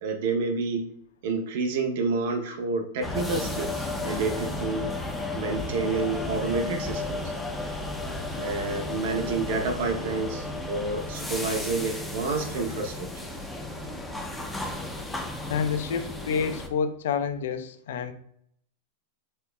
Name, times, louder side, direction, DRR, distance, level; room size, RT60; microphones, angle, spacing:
voice 1, 0.0-0.9 1.2-4.9 5.3-7.3 8.4-13.2, right 3 dB, 60° right, 4 dB, 0.7 m, -29 dB
sound 1, 3.0-16.7, left 2 dB, 5° left, 0.4 m, -33 dB
voice 2, 15.5-18.1, left 6 dB, 75° left, 9 dB, 0.4 m, -28 dB
4.3 x 2.8 x 2.2 m, 0.68 s
supercardioid pair, 160°, 0 cm